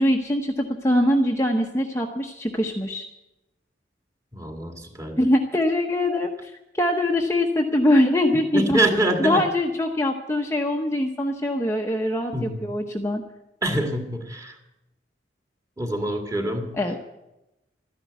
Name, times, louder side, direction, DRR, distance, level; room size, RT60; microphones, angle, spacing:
voice 1, 0.0-3.0 5.2-8.8 9.2-13.2 16.7-17.0, left 1 dB, 15° left, 2 dB, 0.8 m, -23 dB
voice 2, 4.3-5.2 8.5-9.4 12.3-12.6 13.6-14.6 15.8-16.8, right 1 dB, 15° right, 3 dB, 2.0 m, -25 dB
13.5 x 10.5 x 9.2 m, 0.93 s
head